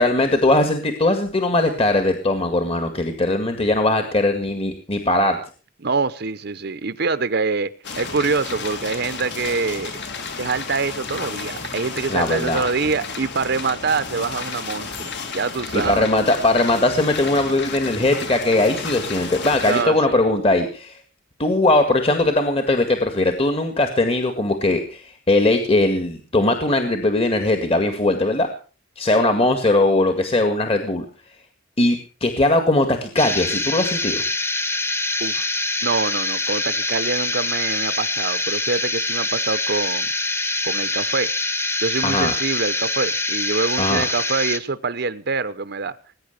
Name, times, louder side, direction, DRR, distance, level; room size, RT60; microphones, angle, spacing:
voice 1, 0.0-5.4 12.1-12.6 15.7-21.0 21.4-28.5 29.0-31.1 31.8-34.2 42.0-42.3 43.8-44.0, left 2 dB, 30° left, 1.9 m, -20 dB
voice 2, 5.8-7.7 8.0-9.9 10.4-16.1 19.7-20.2 35.2-35.5 35.8-40.1 40.6-41.3 41.8-45.9, right 4 dB, 60° right, 0.8 m, -25 dB
sound 1, 7.8-19.8, left 4 dB, 65° left, 3.1 m, -32 dB
sound 2, 33.2-44.6, left 2 dB, 15° left, 1.2 m, -24 dB
20.5 x 9.8 x 6.7 m
head